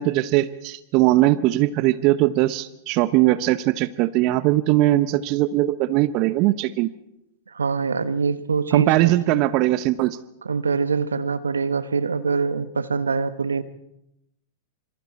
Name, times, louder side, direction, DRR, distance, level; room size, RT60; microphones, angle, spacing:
voice 1, 0.0-6.9 8.7-10.2, right 16 dB, 45° right, 14 dB, 0.8 m, -20 dB
voice 2, 7.5-9.5 10.4-13.6, right 5 dB, 80° right, 13 dB, 1.1 m, -24 dB
26.5 x 24.0 x 4.3 m, 0.83 s
figure-of-eight pair, 100°, 0 cm